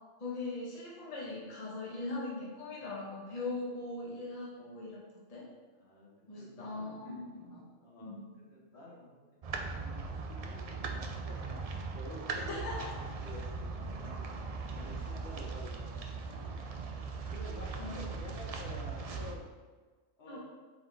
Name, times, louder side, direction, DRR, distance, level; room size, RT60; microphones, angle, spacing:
voice 1, 0.2-5.0 5.3-5.5 6.3-7.6 8.0-8.3 12.3-13.0 17.8-18.0 20.3-20.4, left 2 dB, 30° left, -5 dB, 1.2 m, -40 dB
voice 2, 5.7-7.0 7.8-12.6 13.2-14.2 14.7-16.5 17.3-19.4 20.2-20.4, left 1 dB, 50° left, -5 dB, 1.6 m, -50 dB
sound 1, 9.4-19.4, right 4 dB, 65° right, 0.3 m, -39 dB
7.7 x 4.2 x 3.4 m, 1.4 s
omnidirectional pair, 1.4 m